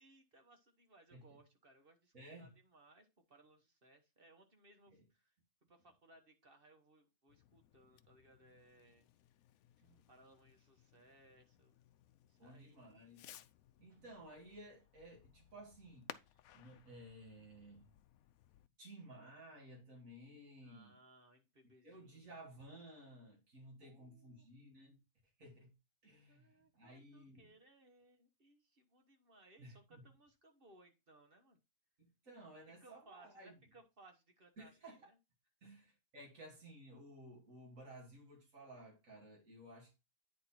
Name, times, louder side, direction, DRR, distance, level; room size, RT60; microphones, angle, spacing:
voice 1, 0.0-5.3 5.7-9.1 10.1-11.7 12.2-13.0 20.6-22.4 23.8-24.5 26.3-31.6 32.8-35.2 35.6-35.8, right 2 dB, 40° right, 1.3 m, -65 dB
voice 2, 2.1-2.5 4.9-5.0 9.8-10.0 12.4-13.3 13.8-16.1 16.5-17.9 18.8-21.0 21.8-25.0 25.4-25.7 26.0-27.5 29.6-30.0 32.0-33.5 34.6-35.1 35.6-40.0, right 1 dB, 60° right, 3.0 m, -56 dB
Fireworks, 7.3-18.7, left 12 dB, 75° left, 1.0 m, -60 dB
9.4 x 4.1 x 4.4 m
omnidirectional pair, 1.6 m